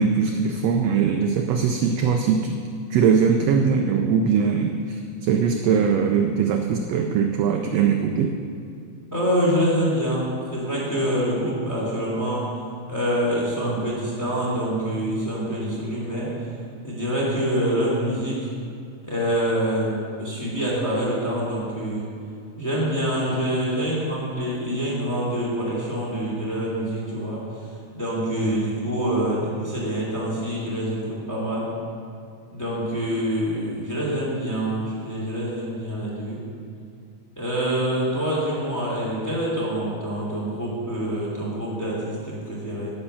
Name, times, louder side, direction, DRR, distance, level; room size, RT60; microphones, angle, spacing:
voice 1, 0.0-2.6 2.9-8.3, right 6 dB, 80° right, 4 dB, 1.5 m, -21 dB
voice 2, 9.1-12.5 12.9-16.3 16.8-18.5 19.0-22.0 22.6-31.7 32.5-36.4 37.4-42.9, equal, 5° left, -7 dB, 2.8 m, -26 dB
9.7 x 8.9 x 6.9 m, 2.4 s
omnidirectional pair, 3.5 m